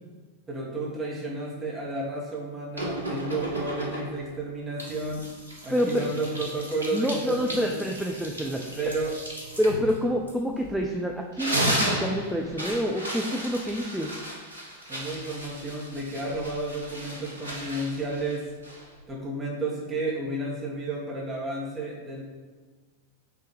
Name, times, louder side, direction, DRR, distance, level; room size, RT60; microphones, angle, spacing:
voice 1, 0.5-5.3 5.6-7.8 8.5-9.1 14.9-18.5 19.1-22.2, right 2 dB, 20° right, -4 dB, 1.8 m, -32 dB
sound 1, 2.8-4.3 4.8-10.9 11.2-19.0, right 1 dB, 80° right, 1.1 m, -34 dB
voice 2, 5.7-6.1 6.9-8.6 9.6-14.1, equal, ahead, 0 dB, 0.5 m, -27 dB
5.9 x 3.5 x 4.8 m, 1.4 s
figure-of-eight pair, 90°, 0 cm